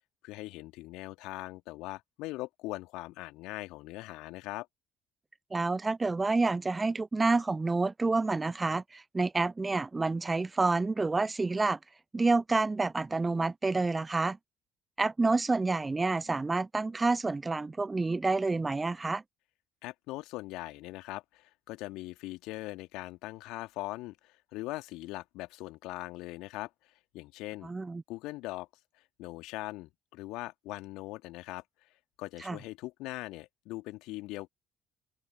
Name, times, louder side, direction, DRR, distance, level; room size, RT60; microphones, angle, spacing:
voice 1, 0.2-4.7 19.8-26.7 27.1-27.7 28.1-28.7 29.2-31.6 32.2-34.5, left 20 dB, 65° left, 2.1 m, -41 dB
voice 2, 5.5-11.8 12.1-14.4 15.0-19.2 27.6-28.0 32.4-32.6, right 3 dB, 20° right, 0.5 m, -28 dB
open air
figure-of-eight pair, 50°, 0 cm